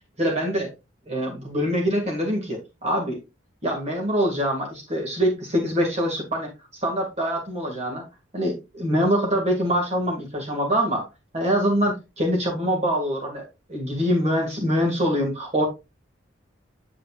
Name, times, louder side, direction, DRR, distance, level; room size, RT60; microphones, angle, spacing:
voice 1, 0.2-0.7 1.1-3.2 3.6-6.5 6.8-8.0 8.3-11.1 11.3-15.6, equal, 35° right, 0 dB, 1.9 m, -24 dB
8.3 x 7.9 x 2.4 m, 0.25 s
head